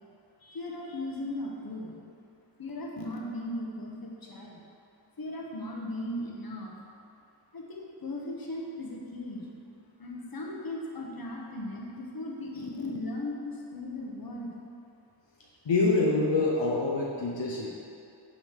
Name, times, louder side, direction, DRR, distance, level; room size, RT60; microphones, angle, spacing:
voice 1, 0.4-2.1 2.6-4.6 5.2-6.7 7.5-9.5 10.0-14.6, left 1 dB, 50° left, -2 dB, 1.1 m, -37 dB
voice 2, 15.6-17.7, left 3 dB, 75° left, -4 dB, 0.9 m, -26 dB
6.5 x 4.1 x 5.1 m, 2.6 s
cardioid pair, 45°, 45 cm